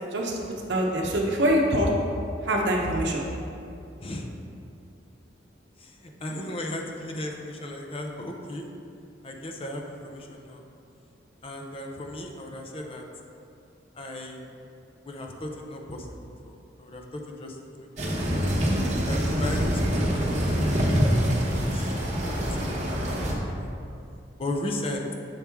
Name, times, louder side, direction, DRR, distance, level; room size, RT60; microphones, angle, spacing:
voice 1, 0.1-0.4 0.7-1.9 2.4-3.3, equal, 70° right, -1 dB, 0.8 m, -24 dB
voice 2, 5.8-8.7 9.2-10.6 11.4-13.0 14.0-14.5 15.0-16.1 16.4-17.0 17.4-17.9 18.7-18.8 19.1-20.6 20.9-21.9 22.3-23.5 24.4-25.1, left 1 dB, 30° left, 2 dB, 0.6 m, -36 dB
sound 1, 18.0-23.3, equal, 40° right, 0.9 m, -25 dB
7.2 x 4.6 x 3.5 m, 2.6 s
head